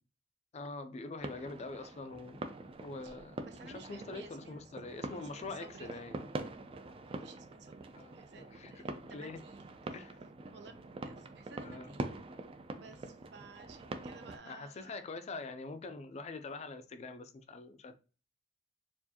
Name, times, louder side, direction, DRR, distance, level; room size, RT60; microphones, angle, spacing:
voice 1, 0.5-2.4 2.8-3.4 3.6-6.3 7.9-9.4 9.9-10.2 11.6-12.0 14.5-18.0, left 3 dB, 40° left, 0.4 m, -44 dB
sound 1, 1.2-14.4, right 2 dB, 30° right, 0.4 m, -45 dB
voice 2, 3.4-6.0 7.1-10.0 10.5-10.8 11.0-12.2 12.7-15.0, right 4 dB, 65° right, 0.7 m, -55 dB
4.4 x 2.5 x 2.8 m
head